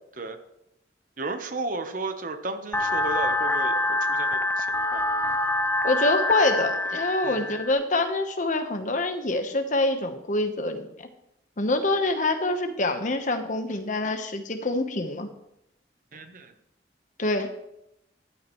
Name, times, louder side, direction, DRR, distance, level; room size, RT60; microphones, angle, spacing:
voice 1, 1.2-5.1 7.2-7.5 16.1-16.5, right 3 dB, 50° right, 8 dB, 1.0 m, -34 dB
sound 1, 2.7-7.7, left 2 dB, 10° left, 0.4 m, -26 dB
voice 2, 5.8-10.9 11.6-15.3 17.2-17.5, left 2 dB, 45° left, 7 dB, 1.1 m, -25 dB
12.5 x 12.0 x 3.1 m, 0.82 s
head